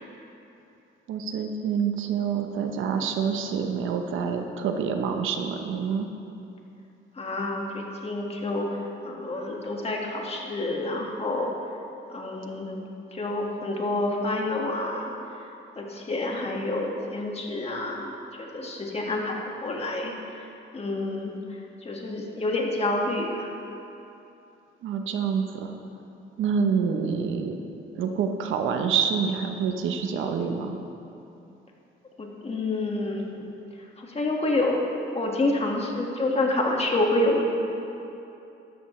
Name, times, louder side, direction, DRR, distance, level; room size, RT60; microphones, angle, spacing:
voice 1, 1.1-6.1 24.8-25.7 26.4-27.6 27.9-30.8, right 6 dB, 85° right, 5 dB, 0.9 m, -27 dB
voice 2, 7.2-8.7 9.0-11.5 12.1-12.8 13.1-15.1 15.8-20.1 20.7-21.4 21.8-23.5 32.2-33.3 34.0-34.8 35.1-37.4, left 2 dB, 30° left, -1 dB, 1.9 m, -28 dB
13.5 x 12.5 x 3.3 m, 2.8 s
cardioid pair, 90°, 20 cm